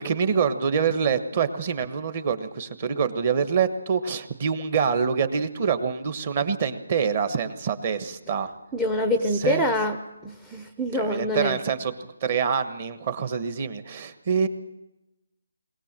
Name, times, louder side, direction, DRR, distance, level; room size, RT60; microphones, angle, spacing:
voice 1, 0.0-8.5 9.3-9.6 10.9-11.9 12.2-14.5, right 6 dB, 30° right, 10 dB, 1.2 m, -25 dB
voice 2, 8.7-11.6, left 1 dB, ahead, 6 dB, 0.7 m, -25 dB
22.0 x 18.0 x 7.5 m, 0.96 s
hypercardioid pair, 175°, 0 cm